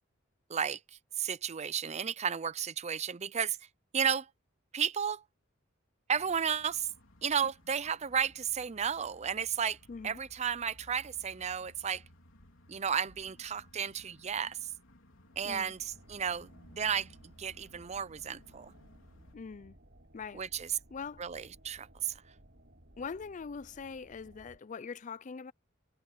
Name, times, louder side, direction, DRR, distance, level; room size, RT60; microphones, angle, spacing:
voice 1, 1.2-3.6 3.9-4.3 4.7-5.2 6.1-6.9 7.2-9.8 10.0-12.0 12.7-14.6 15.4-16.5 16.8-17.1 17.4-18.7 20.3-20.7 21.2-22.1, right 7 dB, 35° right, 0.6 m, -33 dB
sound 1, 6.1-19.4, left 1 dB, 85° left, 3.6 m, -59 dB
voice 2, 9.9-10.2 15.4-15.7 19.3-19.8 20.1-20.4 20.9-21.2 23.0-25.5, left 5 dB, 40° left, 0.4 m, -42 dB
sound 2, 15.2-24.6, right 1 dB, 55° right, 5.0 m, -59 dB
head